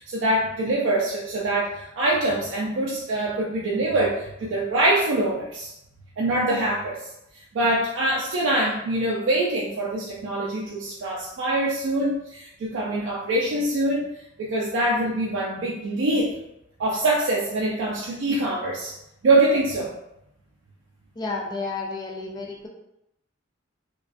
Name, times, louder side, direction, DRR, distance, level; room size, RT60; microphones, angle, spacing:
voice 1, 0.0-5.7 6.2-7.0 7.3-14.1 14.4-16.3 16.8-19.0 19.2-19.9, right 1 dB, 65° right, -3 dB, 0.4 m, -24 dB
voice 2, 21.2-22.7, left 3 dB, 20° left, 0 dB, 0.3 m, -31 dB
2.4 x 2.2 x 2.4 m, 0.83 s
head